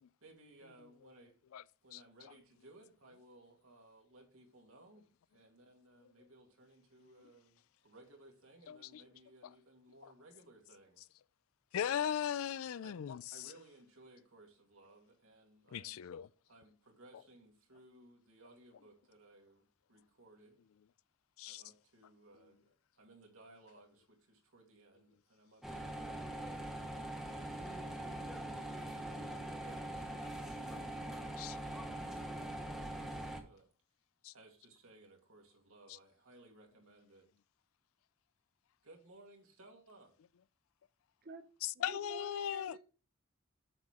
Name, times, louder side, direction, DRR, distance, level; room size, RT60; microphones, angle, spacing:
voice 1, 0.2-1.4 1.8-5.1 5.3-11.0 11.7-12.1 12.8-13.0 13.3-16.0 16.5-20.6 21.4-26.3 27.3-32.5 32.8-33.7 34.3-37.3 38.8-40.1, right 2 dB, 75° right, 2.3 m, -61 dB
voice 2, 8.7-9.0 9.4-9.5 10.0-10.1 11.7-13.5 15.7-16.3 21.4-21.6 31.4-31.6 34.2-34.3 41.6-42.8, left 9 dB, 75° left, 0.3 m, -38 dB
sound 1, 25.6-33.4, right 1 dB, ahead, 1.1 m, -42 dB
voice 3, 41.8-42.8, right 2 dB, 45° right, 0.7 m, -49 dB
7.7 x 6.5 x 3.6 m
head